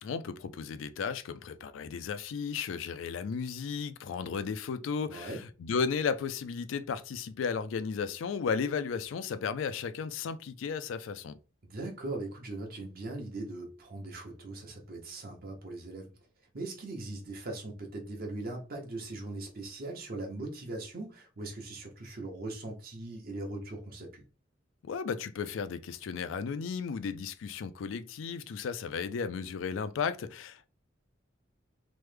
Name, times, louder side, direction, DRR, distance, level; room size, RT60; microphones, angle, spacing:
voice 1, 0.0-11.4 24.8-30.7, left 6 dB, 80° left, 0.3 m, -34 dB
voice 2, 5.1-5.4 11.6-16.1 16.5-24.2, right 2 dB, 50° right, 0.9 m, -40 dB
3.1 x 2.1 x 3.2 m
head